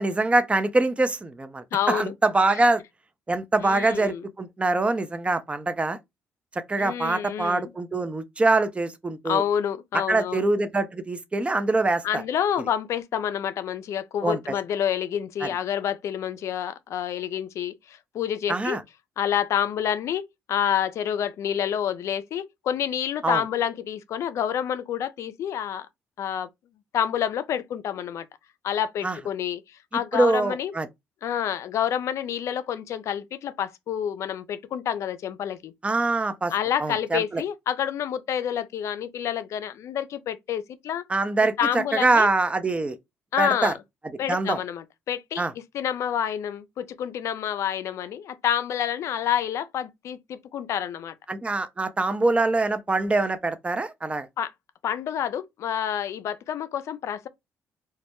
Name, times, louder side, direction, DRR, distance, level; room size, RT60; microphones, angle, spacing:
voice 1, 0.0-2.8 3.3-6.0 6.5-9.4 10.1-12.2 14.2-14.4 15.4-15.5 18.5-18.8 23.2-23.4 29.0-29.2 30.1-30.9 35.8-36.5 36.8-37.4 41.1-43.0 43.4-43.7 44.3-44.6 45.4-45.5 51.3-54.3, right 2 dB, 20° right, 0.4 m, -24 dB
voice 2, 1.7-2.1 3.6-4.2 6.8-7.7 9.2-10.5 12.0-18.8 19.2-25.9 26.2-26.5 26.9-28.3 28.6-30.7 31.2-35.7 36.5-41.0 41.6-42.3 43.3-43.8 44.2-45.5 45.7-51.1 54.4-54.5 54.8-57.3, left 9 dB, 65° left, 0.3 m, -28 dB
2.2 x 2.0 x 2.9 m
supercardioid pair, 65°, 5 cm